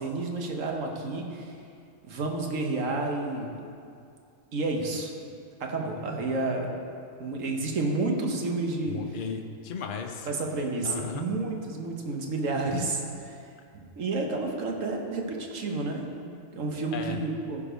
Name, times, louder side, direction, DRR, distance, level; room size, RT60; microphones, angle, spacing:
voice 1, 0.0-1.6 2.0-3.5 4.5-5.1 5.6-6.7 7.2-9.0 10.3-13.5 13.7-17.6, right 3 dB, 70° right, 2 dB, 1.5 m, -30 dB
voice 2, 8.9-10.3 10.8-11.2 16.9-17.2, left 6 dB, 45° left, 4 dB, 0.8 m, -35 dB
14.5 x 5.0 x 5.1 m, 2.4 s
omnidirectional pair, 1.4 m